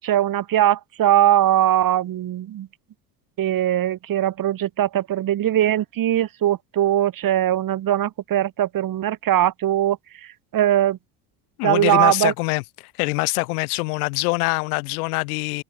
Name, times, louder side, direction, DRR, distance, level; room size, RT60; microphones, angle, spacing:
voice 1, 0.0-2.7 3.4-11.0 11.6-12.3, right 12 dB, 50° right, 7.8 m, -20 dB
voice 2, 11.6-15.6, left 27 dB, 80° left, 3.8 m, -24 dB
supercardioid pair, 95°, 44 cm